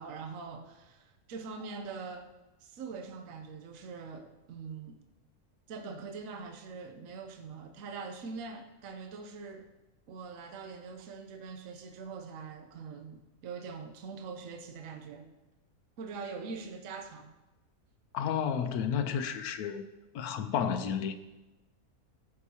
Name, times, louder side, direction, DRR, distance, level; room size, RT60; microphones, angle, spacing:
voice 1, 0.0-2.3 2.6-5.0 5.7-9.7 10.1-15.3 16.0-17.3, right 5 dB, 65° right, 1.1 m, -43 dB
voice 2, 18.1-19.9 20.1-21.2, left 7 dB, 80° left, 1.2 m, -31 dB
14.5 x 6.3 x 2.8 m
omnidirectional pair, 1.6 m